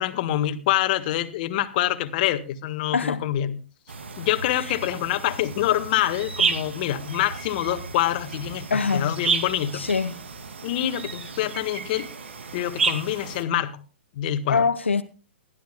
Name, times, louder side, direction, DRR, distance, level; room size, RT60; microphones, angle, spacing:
voice 1, 0.0-3.5 4.2-9.8 10.6-12.1 12.5-13.8 14.1-14.6, left 13 dB, 45° left, 1.6 m, -26 dB
voice 2, 2.9-3.2 4.5-4.7 8.7-9.2 9.7-10.2 14.5-15.0, left 5 dB, 80° left, 0.9 m, -24 dB
sound 1, 3.9-13.4, right 5 dB, 70° right, 2.7 m, -31 dB
21.5 x 14.0 x 2.3 m
figure-of-eight pair, 115°, 6 cm